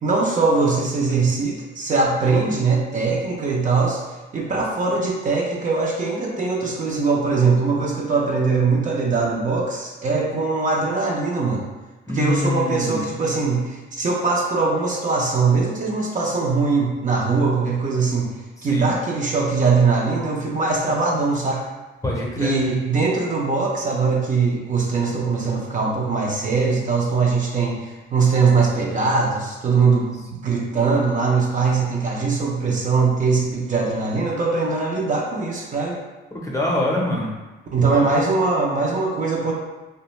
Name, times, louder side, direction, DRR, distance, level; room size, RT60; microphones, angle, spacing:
voice 1, 0.0-4.0 4.3-11.7 12.1-18.3 18.6-21.6 22.4-36.0 37.7-39.5, right 4 dB, 40° right, -2 dB, 0.5 m, -21 dB
voice 2, 12.1-13.1 18.7-18.9 22.0-22.6 36.4-37.4 37.9-38.1, left 1 dB, 15° left, -3 dB, 0.6 m, -24 dB
2.4 x 2.1 x 3.0 m, 1.1 s
cardioid pair, 90°, 20 cm